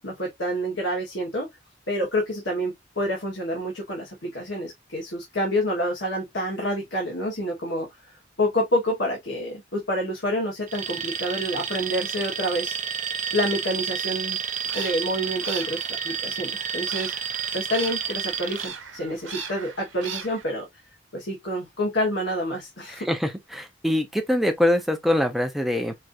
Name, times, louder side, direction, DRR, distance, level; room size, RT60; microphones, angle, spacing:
voice 1, 0.0-1.5 1.9-14.4 14.7-20.7 21.1-23.1, equal, 65° left, 1.4 m, -28 dB
Alarm, 10.7-18.7, right 7 dB, 40° right, 0.5 m, -30 dB
sound 1, 14.4-20.4, right 6 dB, 80° right, 0.9 m, -39 dB
voice 2, 22.9-25.9, left 1 dB, ahead, 0.6 m, -24 dB
4.6 x 2.6 x 2.6 m
head